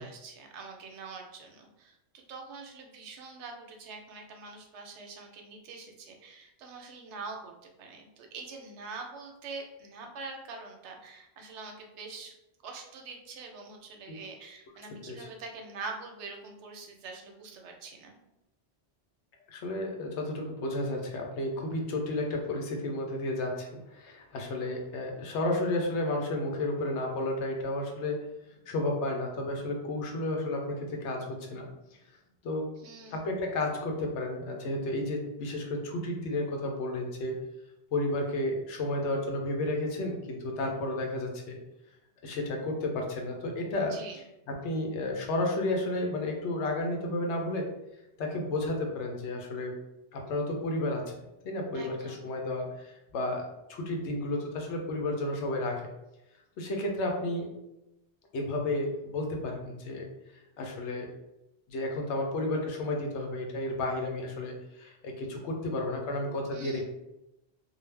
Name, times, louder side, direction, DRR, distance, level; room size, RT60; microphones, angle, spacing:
voice 1, 0.0-12.3 12.6-18.2 32.8-33.3 43.8-44.2 51.7-52.3 66.5-66.8, right 4 dB, 85° right, 3 dB, 0.9 m, -44 dB
voice 2, 19.5-28.2 28.7-31.7 32.4-32.7 33.1-37.4 37.9-41.6 42.2-43.9 44.6-47.7 48.2-49.7 50.1-51.0 51.4-53.4 53.7-55.8 56.6-57.5 58.3-60.0 60.6-61.1 61.7-66.8, left 1 dB, 85° left, 1 dB, 0.9 m, -32 dB
2.5 x 2.0 x 3.2 m, 0.91 s
omnidirectional pair, 1.1 m